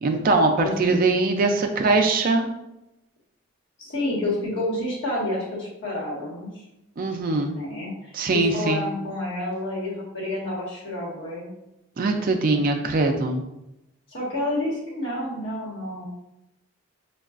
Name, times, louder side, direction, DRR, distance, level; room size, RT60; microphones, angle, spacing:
voice 1, 0.0-2.5 7.0-7.5 8.1-8.8 12.0-13.4, right 3 dB, 40° right, 5 dB, 0.3 m, -22 dB
voice 2, 0.6-0.9 3.8-6.6 7.5-11.5 14.1-16.0, left 1 dB, 55° left, -5 dB, 1.3 m, -29 dB
5.3 x 2.3 x 2.4 m, 0.89 s
head